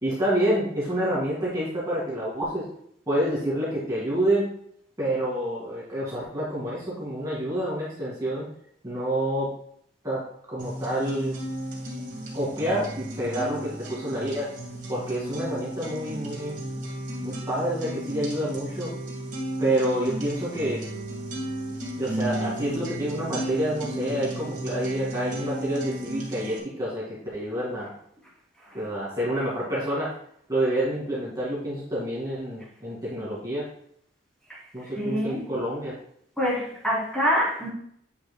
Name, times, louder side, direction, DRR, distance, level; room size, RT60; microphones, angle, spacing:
voice 1, 0.0-2.6 3.1-4.5 5.0-8.5 8.8-9.5 10.0-10.2 10.5-11.3 12.3-14.5 14.9-16.5 17.2-18.9 19.6-20.8 22.0-27.9 28.7-30.1 30.5-33.7 34.7-36.0, right 1 dB, 20° right, -7 dB, 2.2 m, -28 dB
sound 1, 10.6-26.6, right 1 dB, 45° right, 1.9 m, -34 dB
voice 2, 34.5-35.5 36.4-37.7, equal, 5° left, -7 dB, 2.9 m, -26 dB
8.8 x 6.7 x 2.3 m, 0.65 s
head